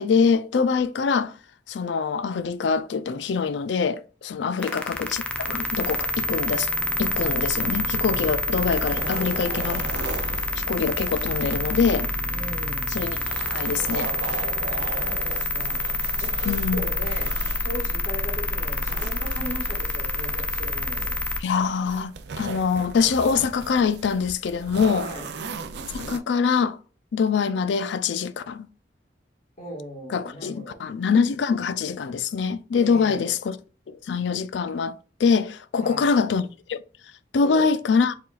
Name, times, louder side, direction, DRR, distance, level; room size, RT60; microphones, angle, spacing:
voice 1, 0.0-1.3 1.7-6.7 7.0-9.9 10.7-12.1 12.9-13.2 13.4-14.1 16.5-16.9 21.4-25.1 25.9-26.8 27.1-28.7 30.1-33.6 33.9-34.9 35.2-36.8 37.3-38.1, left 5 dB, 75° left, 0.4 m, -24 dB
sound 1, 4.6-21.4, left 1 dB, 5° left, 0.4 m, -27 dB
sound 2, 8.1-26.2, right 4 dB, 65° right, 0.4 m, -38 dB
voice 2, 12.3-12.9 14.7-17.3 17.6-21.2 25.0-25.3 29.6-30.8 32.7-33.3 35.8-36.1 37.4-37.7, equal, 40° left, 1.8 m, -38 dB
4.5 x 3.6 x 2.4 m
head